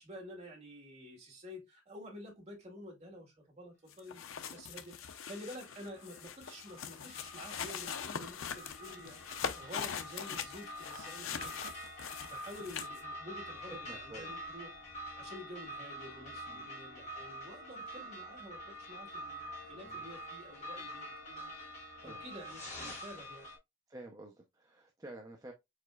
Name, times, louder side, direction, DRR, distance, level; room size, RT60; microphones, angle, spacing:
voice 1, 0.0-4.2 4.5-11.5 12.2-14.7 15.2-21.5 22.0-23.5, equal, 35° right, 2.3 m, -50 dB
sound 1, 3.9-13.0, left 7 dB, 85° left, 0.5 m, -42 dB
sound 2, 5.0-23.6, equal, 35° left, 1.7 m, -47 dB
voice 2, 13.5-14.4 16.5-16.7 19.8-20.1 22.0-22.2 23.9-25.5, right 1 dB, 20° right, 0.6 m, -50 dB
4.9 x 4.2 x 2.3 m
head